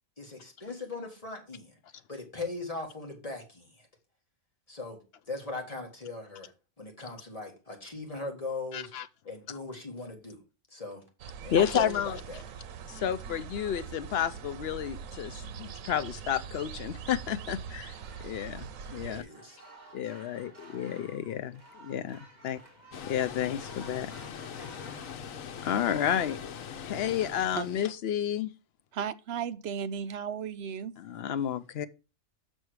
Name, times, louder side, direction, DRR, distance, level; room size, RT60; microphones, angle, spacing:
voice 1, 0.2-1.7 2.1-3.9 4.7-5.0 5.3-6.5 6.8-8.9 9.3-10.4 10.7-11.0 11.4-12.4 19.0-19.6, left 2 dB, 30° left, 1.7 m, -39 dB
voice 2, 8.7-9.1 11.5-12.2 12.9-18.0 18.2-19.2 19.9-22.6 23.1-24.1 25.6-26.4 26.8-28.5 31.0-31.9, left 9 dB, 65° left, 0.7 m, -31 dB
sound 1, 11.2-19.2, right 7 dB, 90° right, 1.1 m, -43 dB
sound 2, 17.8-26.4, right 2 dB, 35° right, 1.8 m, -54 dB
Water, 22.9-28.0, left 7 dB, 90° left, 1.2 m, -42 dB
voice 3, 28.9-30.9, right 8 dB, 65° right, 0.7 m, -34 dB
6.4 x 6.1 x 4.7 m
omnidirectional pair, 1.4 m